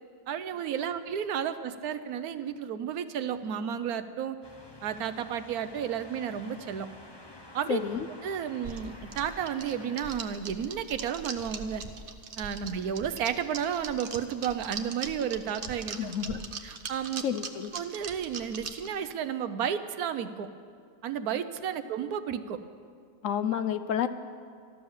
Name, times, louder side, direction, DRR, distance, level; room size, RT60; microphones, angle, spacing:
voice 1, 0.3-4.4 4.8-6.9 7.5-7.8 8.2-11.8 12.4-16.1 16.6-17.2 17.7-20.5 21.0-22.6, right 8 dB, 70° right, 12 dB, 1.1 m, -32 dB
sound 1, 4.4-10.2, left 1 dB, 25° left, 0.5 m, -50 dB
voice 2, 7.7-8.1 16.0-16.4 17.2-17.7 23.2-24.1, left 9 dB, 65° left, 12 dB, 0.8 m, -30 dB
sound 2, 8.6-18.9, right 5 dB, 45° right, 0.8 m, -40 dB
13.5 x 12.5 x 7.1 m, 2.1 s
omnidirectional pair, 1.8 m